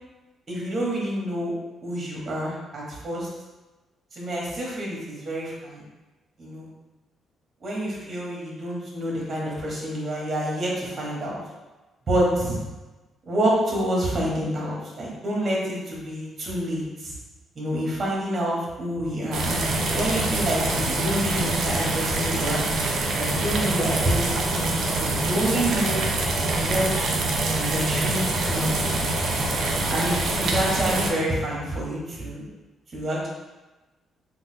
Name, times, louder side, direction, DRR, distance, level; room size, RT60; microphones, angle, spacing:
voice 1, 0.5-1.5 1.8-3.3 4.1-5.8 6.4-6.7 7.6-11.4 12.1-12.6 13.2-17.1 17.6-19.6 19.9-22.6 23.1-24.2 24.5-26.0 26.6-26.9 27.5-28.9 29.9-32.5 32.9-33.3, equal, 40° right, -4 dB, 1.1 m, -27 dB
sound 1, 19.3-31.1, right 2 dB, 65° right, 0.5 m, -25 dB
3.9 x 2.2 x 2.7 m, 1.1 s
cardioid pair, 90°, 0 cm